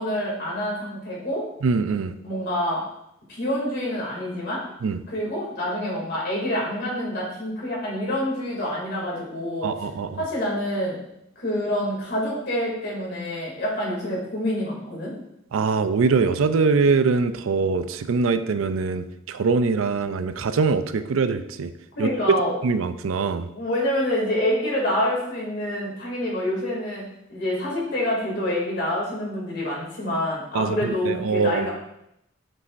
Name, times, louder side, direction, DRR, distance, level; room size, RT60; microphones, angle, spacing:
voice 1, 0.0-1.4 2.2-2.8 3.3-4.6 5.1-9.7 10.2-11.0 11.4-15.1 22.0-22.5 23.5-27.0 27.3-31.7, left 1 dB, 55° left, -4 dB, 2.5 m, -27 dB
voice 2, 1.6-2.1 4.8-5.0 9.6-10.2 15.5-21.7 22.0-22.1 22.6-23.5 30.5-31.7, right 4 dB, 85° right, 11 dB, 0.4 m, -23 dB
8.1 x 5.4 x 2.6 m, 0.80 s
head